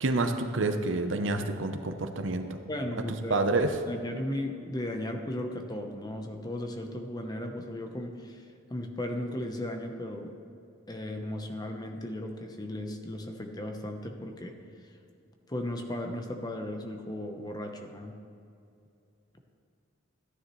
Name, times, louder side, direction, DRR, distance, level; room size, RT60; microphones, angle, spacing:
voice 1, 0.0-2.5 3.3-3.7, right 2 dB, 70° right, 7 dB, 0.8 m, -28 dB
voice 2, 2.7-3.4 3.9-10.3 10.9-14.5 15.5-18.1, left 1 dB, 20° left, 4 dB, 0.9 m, -36 dB
14.5 x 9.8 x 3.2 m, 2.5 s
head